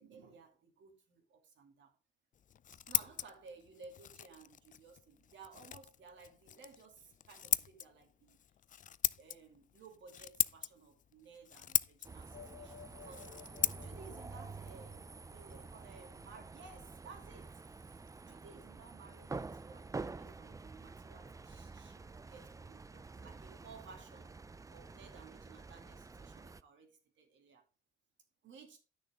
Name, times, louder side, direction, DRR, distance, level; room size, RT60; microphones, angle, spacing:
voice 1, 0.0-1.9 2.9-8.4 9.2-24.3 24.7-27.6 28.4-28.8, right 4 dB, 70° right, 2.7 m, -57 dB
Scissors, 2.3-15.9, left 9 dB, 40° left, 0.4 m, -40 dB
sound 1, 12.0-26.6, right 3 dB, 15° right, 0.5 m, -48 dB
sound 2, 12.3-16.2, left 9 dB, 80° left, 1.4 m, -56 dB
10.5 x 6.4 x 3.7 m
cardioid pair, 90°, 20 cm